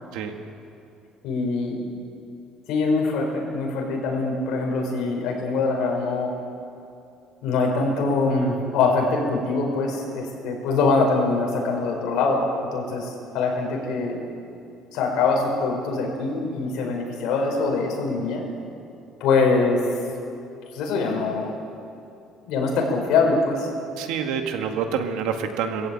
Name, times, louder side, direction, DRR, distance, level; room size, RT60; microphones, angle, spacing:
voice 1, 1.2-1.8 2.7-6.3 7.4-12.4 12.7-14.2 14.9-18.4 19.2-19.8 20.7-21.7 22.4-23.7, left 3 dB, 65° left, 0 dB, 5.2 m, -23 dB
voice 2, 24.0-25.9, right 7 dB, 80° right, 5 dB, 2.0 m, -27 dB
20.5 x 15.5 x 8.8 m, 2.7 s
cardioid pair, 170°, 0 cm